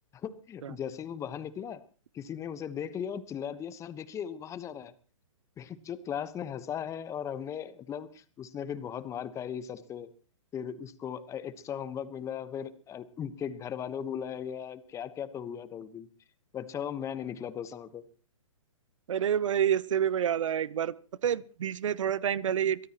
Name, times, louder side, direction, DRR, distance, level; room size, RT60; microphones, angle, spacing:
voice 1, 0.1-1.8 2.1-4.9 5.6-10.1 10.5-16.1 16.5-18.1, left 8 dB, 15° left, 14 dB, 1.1 m, -37 dB
voice 2, 19.1-20.9 21.2-22.9, right 9 dB, 65° right, 21 dB, 0.8 m, -28 dB
23.5 x 17.5 x 3.0 m, 0.38 s
hypercardioid pair, 130°, 17 cm